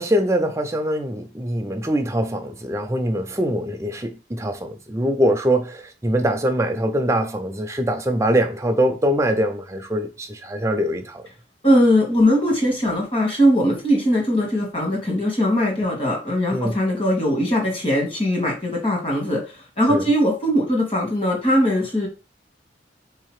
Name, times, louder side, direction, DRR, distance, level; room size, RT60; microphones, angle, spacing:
voice 1, 0.0-11.2 16.5-16.7 19.9-20.0, equal, 15° right, 0.4 m, -23 dB
voice 2, 11.6-22.1, equal, 30° left, 1.3 m, -20 dB
3.8 x 2.8 x 3.1 m
head